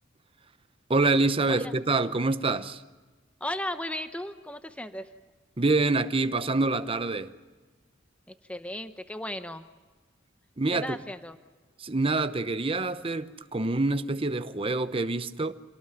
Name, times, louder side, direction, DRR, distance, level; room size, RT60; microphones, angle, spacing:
voice 1, 0.9-2.8 5.6-7.3 10.6-11.0 11.8-15.5, right 3 dB, 30° right, 0.8 m, -26 dB
voice 2, 3.4-5.1 8.5-9.7 10.7-11.4, left 1 dB, 5° left, 0.8 m, -35 dB
27.0 x 18.5 x 9.3 m
head